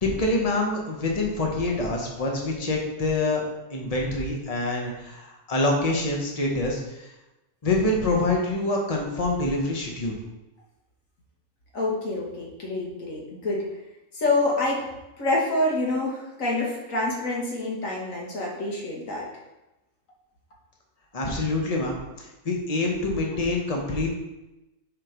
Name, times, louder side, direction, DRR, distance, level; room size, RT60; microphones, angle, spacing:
voice 1, 0.0-3.4 3.7-6.8 7.6-10.2 21.1-24.1, left 2 dB, 30° left, 0 dB, 1.3 m, -26 dB
voice 2, 11.7-13.7 14.1-14.8 15.2-19.3, left 2 dB, 85° left, -2 dB, 1.9 m, -27 dB
7.3 x 4.1 x 5.1 m, 0.98 s
omnidirectional pair, 1.3 m